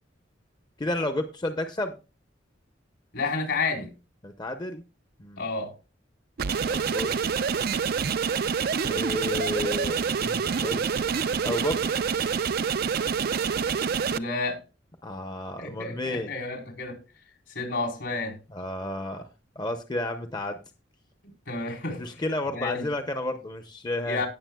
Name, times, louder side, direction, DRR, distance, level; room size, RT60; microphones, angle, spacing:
voice 1, 0.8-1.9 4.2-4.8 5.2-5.4 6.9-7.2 8.8-10.9 11.4-12.0 15.0-16.3 18.5-19.3 19.6-20.6 22.0-24.2, left 1 dB, 25° left, 0.8 m, -31 dB
voice 2, 3.1-3.9 5.4-5.7 14.1-14.6 15.6-17.0 17.5-18.4 21.5-22.0 22.5-22.9 24.0-24.3, left 3 dB, 75° left, 3.9 m, -30 dB
sound 1, 6.4-14.2, right 6 dB, 55° right, 0.5 m, -27 dB
18.5 x 7.0 x 2.3 m
head